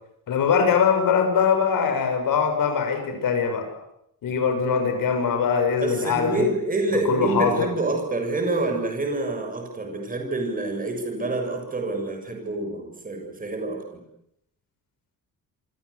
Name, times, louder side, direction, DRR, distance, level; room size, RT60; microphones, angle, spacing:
voice 1, 0.3-3.7 4.2-6.5 6.9-7.7, left 6 dB, 70° left, 6 dB, 6.9 m, -22 dB
voice 2, 5.8-14.0, right 2 dB, 25° right, 3 dB, 6.9 m, -27 dB
28.5 x 24.5 x 8.4 m, 0.78 s
wide cardioid pair, 175°, 34 cm